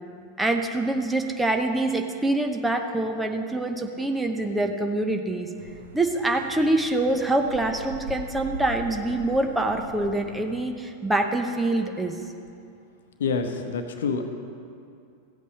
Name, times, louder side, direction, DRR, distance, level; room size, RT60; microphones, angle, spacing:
voice 1, 0.4-5.5 5.9-12.2, right 2 dB, 5° right, 5 dB, 0.8 m, -25 dB
sound 1, 5.5-10.7, right 2 dB, 70° right, 1.1 m, -41 dB
voice 2, 13.2-14.2, left 5 dB, 60° left, 6 dB, 1.0 m, -27 dB
15.0 x 8.4 x 5.4 m, 2.5 s
figure-of-eight pair, 90°, 0 cm